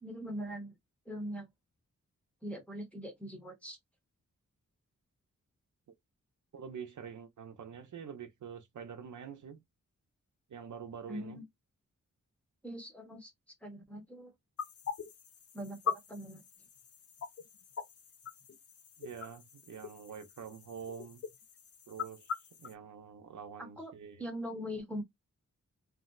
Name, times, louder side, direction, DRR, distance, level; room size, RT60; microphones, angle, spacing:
voice 1, 0.0-0.7 1.1-1.5 2.4-3.8 11.1-11.4 12.6-13.3 13.6-14.3 15.5-16.4 23.6-23.9 24.2-25.0, equal, 5° left, 0.8 m, -41 dB
voice 2, 6.5-9.6 10.5-11.4 19.0-21.2 21.9-22.3 22.6-24.2, right 7 dB, 75° right, 0.7 m, -46 dB
sound 1, 14.6-22.7, left 7 dB, 50° left, 0.5 m, -42 dB
2.5 x 2.1 x 3.8 m
wide cardioid pair, 135°, 31 cm